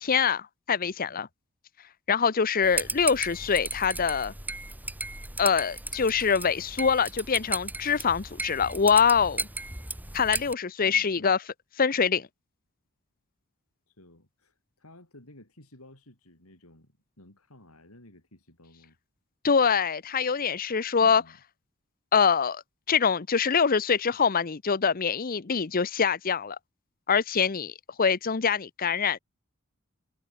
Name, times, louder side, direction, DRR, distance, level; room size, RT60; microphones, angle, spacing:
voice 1, 0.0-1.3 2.1-4.3 5.4-9.5 10.1-11.4 11.8-12.3 19.4-21.2 22.1-22.6 22.9-26.6 27.1-29.2, left 6 dB, 40° left, 0.7 m, -24 dB
voice 2, 0.8-1.3 10.8-11.4 13.9-19.0 21.0-21.4, left 1 dB, 80° left, 7.2 m, -54 dB
sound 1, 2.6-10.5, right 2 dB, 10° right, 2.5 m, -35 dB
head